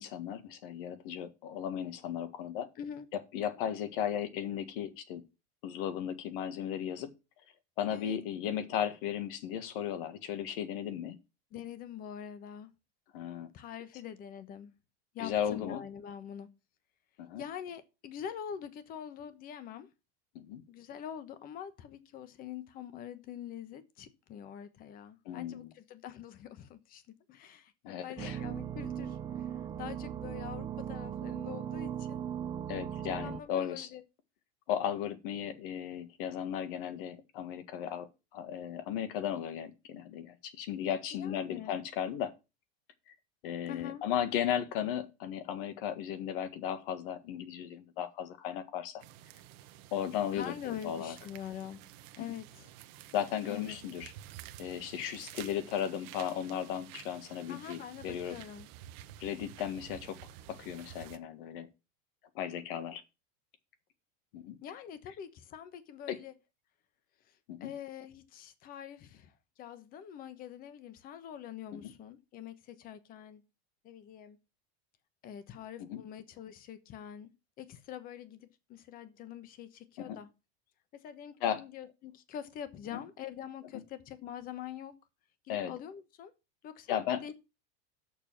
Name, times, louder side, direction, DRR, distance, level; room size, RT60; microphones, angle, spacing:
voice 1, 0.0-2.7 3.3-5.2 5.6-7.1 7.8-11.2 13.1-13.5 15.2-15.8 17.2-17.4 20.4-20.6 25.3-25.7 27.8-28.4 32.7-33.9 34.7-38.1 38.3-42.3 43.1-43.2 43.4-49.0 49.9-51.2 53.1-54.1 54.6-58.4 59.2-60.2 60.5-61.7 62.4-63.0 64.3-64.6 66.1-66.2 67.5-67.7 71.8-71.9 75.9-76.0 80.0-80.2 81.4-81.6 82.9-83.0 85.5-85.7 86.9-87.2, left 9 dB, 60° left, 1.8 m, -35 dB
voice 2, 11.5-12.7 13.5-14.7 15.1-16.5 17.4-19.9 20.7-27.0 27.3-29.4 29.8-32.2 33.2-34.0 41.2-41.7 43.7-44.0 50.3-51.8 52.2-52.7 53.5-53.8 57.5-58.7 62.7-62.9 64.6-66.3 67.6-69.3 69.6-73.4 73.8-74.4 75.2-77.3 77.6-80.3 80.9-84.9 85.4-86.3 86.6-87.3, left 9 dB, 30° left, 1.1 m, -45 dB
sound 1, 28.2-33.4, right 9 dB, 15° right, 0.5 m, -38 dB
sound 2, 49.0-61.2, right 13 dB, 50° right, 1.0 m, -51 dB
6.8 x 6.7 x 7.3 m
supercardioid pair, 165°, 31 cm